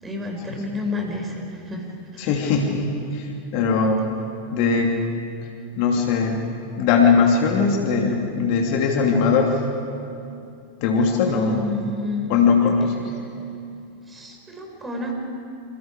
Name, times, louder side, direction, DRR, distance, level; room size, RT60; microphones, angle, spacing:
voice 1, 0.0-1.4 1.7-1.9 2.1-2.4 11.3-12.3 14.1-15.1, left 2 dB, 15° right, 1 dB, 5.6 m, -30 dB
voice 2, 2.2-4.0 4.5-4.9 5.8-6.4 6.8-9.5 10.8-11.6 12.3-12.9, left 5 dB, 45° left, 2 dB, 2.8 m, -20 dB
28.5 x 27.5 x 5.0 m, 2.6 s
figure-of-eight pair, 90°, 0 cm